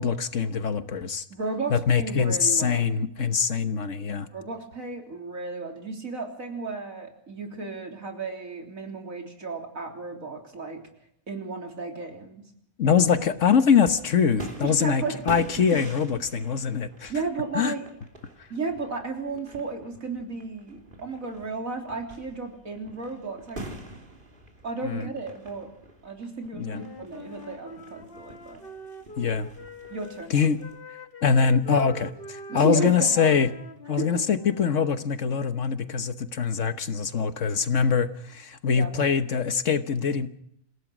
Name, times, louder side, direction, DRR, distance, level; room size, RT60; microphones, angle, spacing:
voice 1, 0.0-1.2 1.7-4.3 12.8-17.1 17.5-17.7 24.8-25.0 26.5-26.8 29.2-29.5 30.3-30.6 31.2-33.5 33.9-40.3, left 6 dB, 60° left, 11 dB, 1.5 m, -23 dB
voice 2, 1.3-2.9 4.3-10.8 11.3-12.4 14.6-15.2 17.1-17.9 18.5-23.6 24.6-25.7 26.0-28.6 29.9-30.5 32.5-33.3 34.0-34.2 38.7-39.0, right 4 dB, 70° right, 3 dB, 3.9 m, -34 dB
sound 1, 12.9-30.8, right 2 dB, 35° right, 3.2 m, -46 dB
Wind instrument woodwind instrument, 26.6-30.3 30.6-35.0, left 2 dB, 40° left, 1.7 m, -44 dB
27.5 x 16.5 x 6.2 m, 0.71 s
omnidirectional pair, 1.5 m